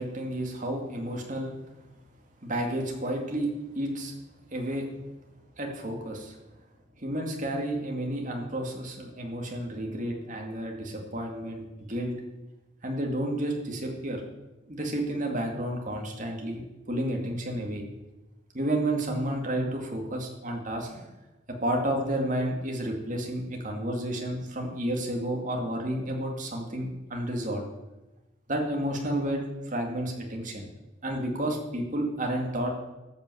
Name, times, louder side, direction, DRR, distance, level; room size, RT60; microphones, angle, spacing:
voice 1, 0.0-1.6 2.4-3.5 3.7-4.1 4.5-4.9 5.6-6.4 7.0-12.1 12.8-14.2 14.7-16.6 16.9-17.8 18.5-21.1 21.6-27.6 28.5-30.6 31.0-32.7, right 1 dB, 40° right, 1 dB, 2.2 m, -31 dB
13.5 x 5.7 x 7.8 m, 1.1 s
head